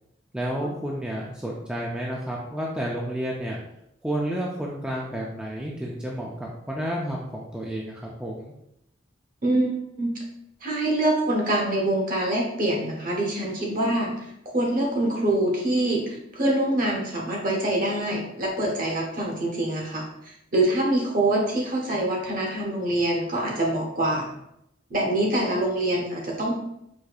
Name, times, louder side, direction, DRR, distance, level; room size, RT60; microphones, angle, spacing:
voice 1, 0.3-3.6 4.0-8.5, right 1 dB, 5° right, -3 dB, 0.3 m, -31 dB
voice 2, 9.4-10.2 10.6-24.3 24.9-26.5, right 1 dB, 45° right, -1 dB, 0.9 m, -25 dB
4.7 x 2.7 x 2.3 m, 0.81 s
head